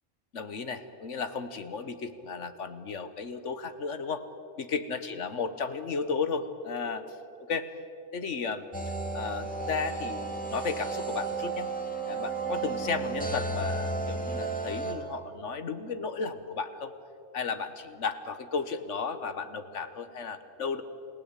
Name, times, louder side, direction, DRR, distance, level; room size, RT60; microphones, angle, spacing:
voice 1, 0.3-4.3 4.6-7.0 7.5-7.7 8.1-8.6 9.1-11.7 12.1-16.9 17.3-20.8, left 5 dB, 70° left, 10 dB, 1.6 m, -34 dB
sound 1, 8.7-14.9, right 3 dB, 5° left, 2.2 m, -33 dB
28.5 x 17.5 x 8.3 m, 2.8 s
omnidirectional pair, 1.3 m